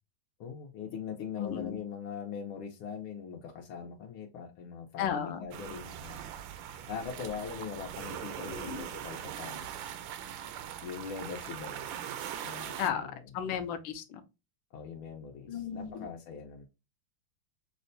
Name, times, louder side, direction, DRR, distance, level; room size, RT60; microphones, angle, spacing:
voice 1, 0.4-6.3 6.9-9.7 10.8-11.9 12.4-13.1 14.7-16.7, left 6 dB, 90° left, 1.5 m, -41 dB
voice 2, 1.4-1.8 5.0-5.5 8.5-8.9 12.8-14.2 15.5-16.1, left 8 dB, 75° left, 1.3 m, -35 dB
sound 1, 5.5-12.9, right 10 dB, 75° right, 1.2 m, -41 dB
6.0 x 2.2 x 2.5 m
omnidirectional pair, 2.3 m